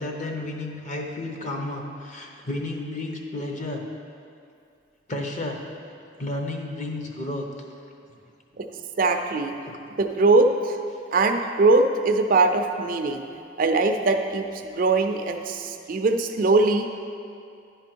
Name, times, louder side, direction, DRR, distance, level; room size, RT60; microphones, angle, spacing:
voice 1, 0.0-3.8 5.1-5.6 6.2-7.5 9.7-9.8, left 2 dB, 40° left, 1 dB, 0.8 m, -32 dB
voice 2, 9.0-9.5 10.0-10.8 11.1-13.2 13.6-16.9, right 3 dB, 45° right, 5 dB, 0.4 m, -21 dB
10.5 x 5.1 x 4.5 m, 2.5 s
head